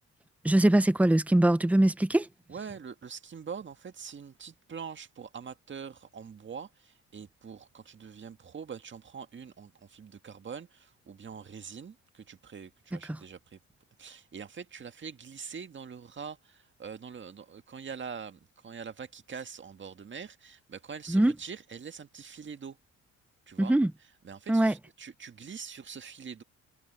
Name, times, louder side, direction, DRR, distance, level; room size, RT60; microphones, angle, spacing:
voice 1, 0.4-2.3 21.1-21.3 23.6-23.9 24.5-24.7, right 1 dB, 5° right, 0.9 m, -22 dB
voice 2, 2.5-13.6 14.0-22.8 23.5-23.8 24.2-26.4, right 6 dB, 40° right, 1.8 m, -44 dB
cardioid pair, 90°, 30 cm